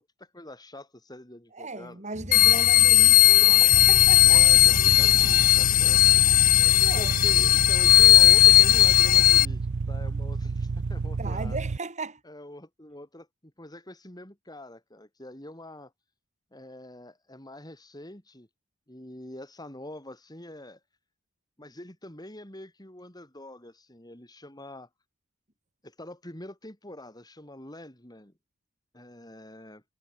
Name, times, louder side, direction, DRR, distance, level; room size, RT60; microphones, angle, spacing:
voice 1, 0.0-2.0 4.3-6.0 6.9-11.6 12.2-15.9 16.5-18.5 18.9-20.8 21.6-24.9 25.8-28.3 28.9-29.8, left 1 dB, 20° left, 4.0 m, -44 dB
voice 2, 1.5-4.5 6.6-7.1 11.2-12.2, right 3 dB, 35° right, 3.9 m, -37 dB
sound 1, 2.1-9.0, equal, ahead, 3.5 m, -40 dB
sound 2, 2.3-9.5, left 14 dB, 40° left, 0.4 m, -17 dB
sound 3, 3.7-11.8, right 4 dB, 55° right, 0.5 m, -31 dB
head